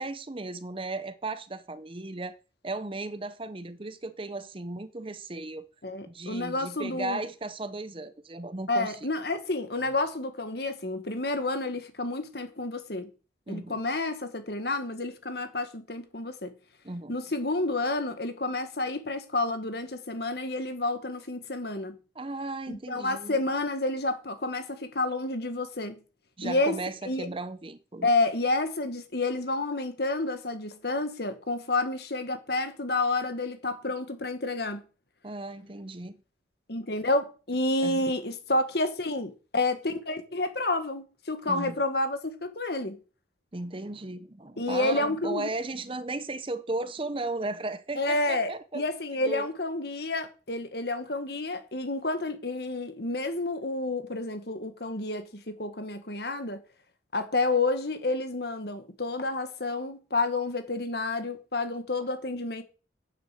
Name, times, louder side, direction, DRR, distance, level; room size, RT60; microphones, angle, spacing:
voice 1, 0.0-2.4 2.6-5.7 6.1-9.1 13.5-13.8 16.8-17.1 22.1-23.4 26.4-28.1 35.2-36.2 37.8-38.0 41.5-41.8 43.5-48.8 49.2-49.5, right 2 dB, 30° right, 0.7 m, -35 dB
voice 2, 5.8-7.2 8.7-13.1 13.5-16.5 17.1-21.9 22.7-26.0 26.4-26.8 27.0-27.3 28.0-34.8 36.7-43.0 44.6-45.5 48.0-56.6 57.1-62.6, left 2 dB, 60° left, 1.7 m, -30 dB
9.9 x 6.8 x 7.6 m
head